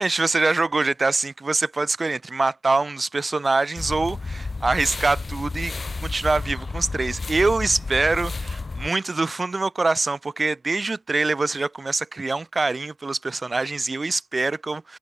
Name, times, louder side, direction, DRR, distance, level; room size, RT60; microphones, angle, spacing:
voice 1, 0.0-5.7 6.0-15.0, right 3 dB, 25° right, 4.7 m, -24 dB
sound 1, 3.8-8.9, left 3 dB, 25° left, 4.3 m, -31 dB
cardioid pair, 90°, 0 cm